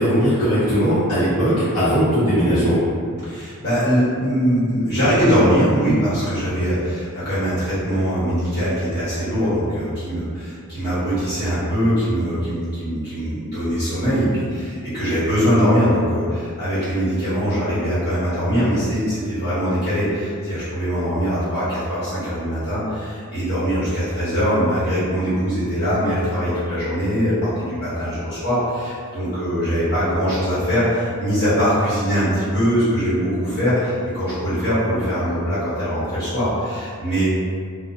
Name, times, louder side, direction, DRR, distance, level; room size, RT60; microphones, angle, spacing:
voice 1, 0.0-2.8, equal, 75° left, -15 dB, 0.9 m, -18 dB
voice 2, 3.2-37.3, equal, 50° left, -12 dB, 1.4 m, -21 dB
2.4 x 2.1 x 2.6 m, 2.1 s
head